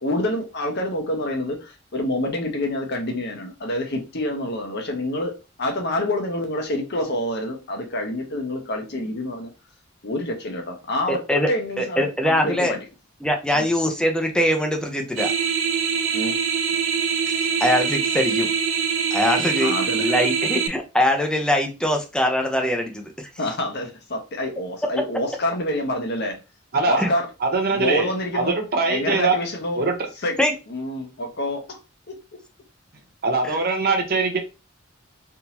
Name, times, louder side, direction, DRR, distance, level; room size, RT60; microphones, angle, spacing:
voice 1, 0.0-9.5 10.0-12.8 13.5-13.7 16.1-16.4 19.6-20.0 23.4-26.4 26.9-27.3 27.7-28.6 28.9-29.8 30.2-30.3 30.7-31.8 32.1-32.2, left 1 dB, 60° left, 1.0 m, -27 dB
voice 2, 11.1-11.5 11.8-12.7 13.2-15.3 17.6-18.5 19.1-23.3 27.0-27.1 30.4-30.5 33.4-33.6, left 1 dB, 5° left, 0.6 m, -22 dB
sound 1, 15.2-20.7, right 6 dB, 75° right, 0.6 m, -23 dB
voice 3, 26.7-27.1 27.4-29.4 29.8-29.9 33.2-34.4, right 3 dB, 50° right, 0.9 m, -22 dB
3.6 x 2.7 x 2.9 m
head